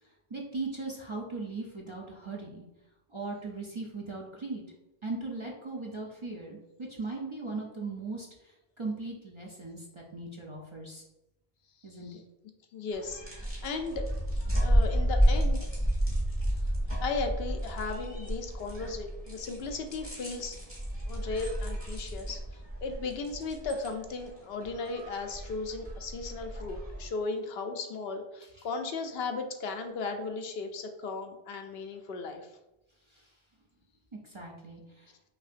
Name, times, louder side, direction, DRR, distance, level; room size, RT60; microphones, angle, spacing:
voice 1, 0.3-2.6 3.1-4.6 5.0-8.3 8.8-11.0 11.8-12.2 28.6-28.7 33.1-33.2 34.2-35.1, right 3 dB, 35° right, -2 dB, 0.5 m, -38 dB
voice 2, 11.9-12.2 12.7-14.1 14.6-15.6 17.0-20.6 21.1-32.5, left 3 dB, 70° left, 5 dB, 0.8 m, -36 dB
sound 1, 12.9-27.1, equal, 15° right, 1.2 m, -31 dB
5.5 x 2.8 x 2.5 m, 0.93 s
omnidirectional pair, 1.1 m